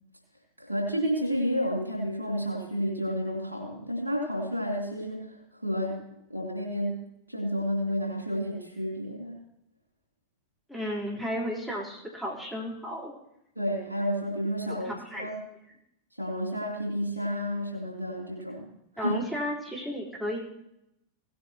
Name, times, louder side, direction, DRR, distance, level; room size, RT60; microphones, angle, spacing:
voice 1, 0.6-6.0 6.3-9.4 13.5-14.9 15.2-15.4 16.1-18.7 18.9-19.2, equal, 85° left, -1 dB, 3.1 m, -31 dB
voice 2, 10.7-13.1 14.7-15.3 19.0-20.4, equal, 5° left, -5 dB, 3.9 m, -33 dB
17.5 x 9.5 x 3.0 m, 0.81 s
figure-of-eight pair, 90°, 0 cm